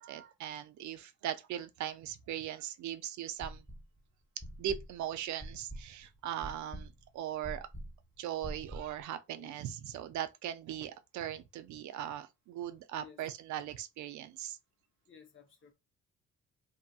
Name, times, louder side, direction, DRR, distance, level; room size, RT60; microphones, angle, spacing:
voice 1, 0.0-3.6 4.6-7.7 8.2-14.6, right 11 dB, 65° right, 0.5 m, -39 dB
sound 1, 3.4-4.0 4.4-9.0, equal, 5° left, 0.6 m, -45 dB
voice 2, 15.1-15.7, left 7 dB, 40° left, 0.8 m, -55 dB
2.8 x 2.6 x 2.3 m
supercardioid pair, 60°, 31 cm